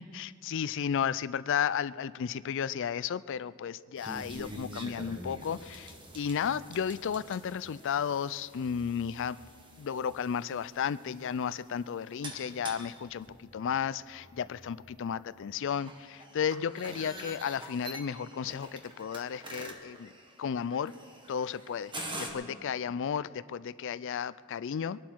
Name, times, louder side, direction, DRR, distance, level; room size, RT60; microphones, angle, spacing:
voice 1, 0.0-9.4 9.8-20.1 20.4-20.9 21.3-25.0, left 7 dB, 60° left, 17 dB, 0.4 m, -33 dB
sound 1, 3.9-22.3, right 1 dB, 20° right, 1.5 m, -46 dB
23.0 x 11.5 x 4.6 m, 2.4 s
head